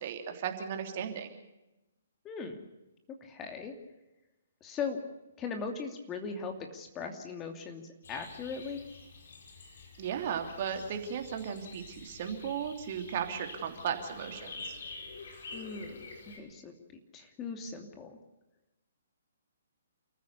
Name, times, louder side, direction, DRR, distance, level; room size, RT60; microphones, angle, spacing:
voice 1, 0.0-1.4 10.0-14.7, right 8 dB, 45° right, 5 dB, 3.2 m, -36 dB
voice 2, 2.2-2.6 3.2-3.8 4.6-5.0 5.4-7.8 8.1-8.8 15.5-16.7 17.1-18.2, left 5 dB, 20° left, 4 dB, 2.7 m, -39 dB
sound 1, 8.0-16.4, left 3 dB, 60° left, 4.8 m, -48 dB
29.0 x 15.0 x 6.9 m, 0.95 s
figure-of-eight pair, 130°, 0 cm